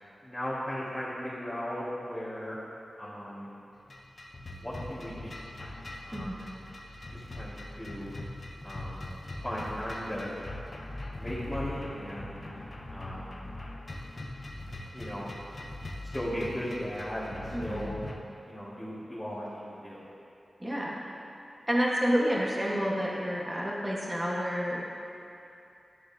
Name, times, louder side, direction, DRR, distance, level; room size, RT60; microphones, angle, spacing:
voice 1, 0.2-2.6 3.0-3.5 4.6-5.3 6.0-6.5 7.1-8.1 8.6-9.0 9.4-10.3 11.2-12.5 12.9-13.4 14.9-15.3 16.1-17.9 18.5-20.0, equal, 5° left, -12 dB, 2.0 m, -37 dB
sound 1, 3.9-18.2, left 1 dB, 40° left, 0.7 m, -41 dB
voice 2, 17.5-17.9 20.6-20.9 21.7-24.8, equal, 15° right, -5 dB, 1.4 m, -29 dB
11.5 x 6.5 x 2.8 m, 2.7 s
wide cardioid pair, 70°, 0 cm